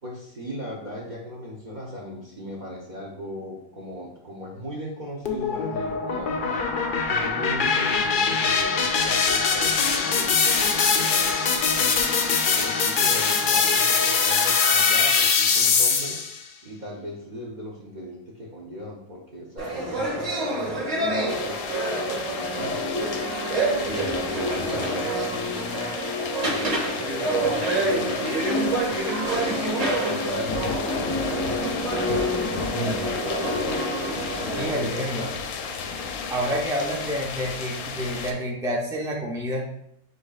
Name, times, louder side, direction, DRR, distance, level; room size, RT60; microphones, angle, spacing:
voice 1, 0.0-12.0 12.5-16.2 16.6-21.6 22.0-23.9 24.2-25.9 26.4-29.7 30.0-32.4 32.9-34.1 34.4-35.4 36.9-37.0, equal, 45° right, -2 dB, 0.7 m, -38 dB
sound 1, 5.3-16.4, left 5 dB, 70° left, 0.4 m, -22 dB
sound 2, 19.6-34.8, right 1 dB, 65° right, 2.0 m, -27 dB
sound 3, 21.3-38.3, left 5 dB, 90° left, 1.1 m, -33 dB
voice 2, 34.6-35.3 36.3-39.7, equal, 5° right, -3 dB, 0.6 m, -28 dB
7.7 x 2.7 x 2.3 m, 0.75 s
omnidirectional pair, 1.5 m